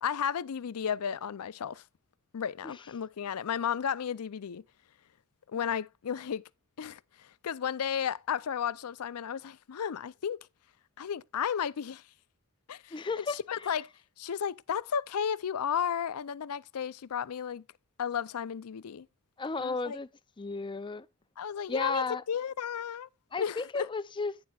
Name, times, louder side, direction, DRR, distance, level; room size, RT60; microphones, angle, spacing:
voice 1, 0.0-1.8 2.3-4.6 5.5-6.4 6.8-10.5 11.0-12.0 12.7-13.9 14.2-17.6 18.0-19.1 19.6-20.0 21.4-23.1 23.4-23.9, left 8 dB, 85° left, 0.5 m, -33 dB
voice 2, 12.9-13.8 19.4-20.1 20.4-21.1 21.7-22.2 23.3-24.4, left 3 dB, 20° left, 0.4 m, -34 dB
11.5 x 9.7 x 2.4 m
head